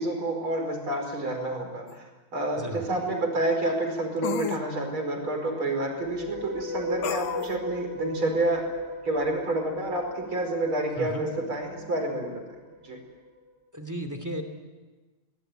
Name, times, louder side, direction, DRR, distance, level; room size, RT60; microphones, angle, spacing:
voice 1, 0.0-2.0 2.3-8.6 9.0-12.4 12.8-13.0, right 2 dB, 80° right, 3 dB, 5.8 m, -29 dB
sound 1, 1.9-2.0 4.2-4.6 7.0-7.6, left 10 dB, 75° left, 1.7 m, -31 dB
sound 2, 6.0-13.2, left 1 dB, 35° left, 4.0 m, -37 dB
voice 2, 13.7-14.4, equal, 10° right, 7 dB, 2.7 m, -34 dB
22.5 x 20.0 x 9.3 m, 1.2 s
omnidirectional pair, 2.2 m